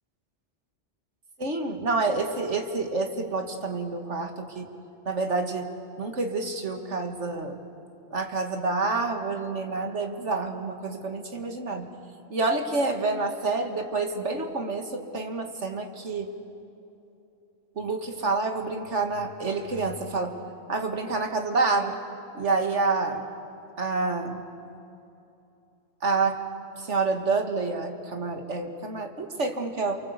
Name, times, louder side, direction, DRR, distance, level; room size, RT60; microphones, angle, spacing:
voice 1, 1.4-4.7 5.1-5.7 6.0-7.6 8.1-11.9 12.3-16.3 17.8-20.4 20.7-22.0 22.3-23.3 23.8-24.4 26.0-26.4 26.8-30.0, right 3 dB, 80° right, 4 dB, 2.3 m, -28 dB
29.0 x 23.5 x 8.2 m, 2.8 s
omnidirectional pair, 1.2 m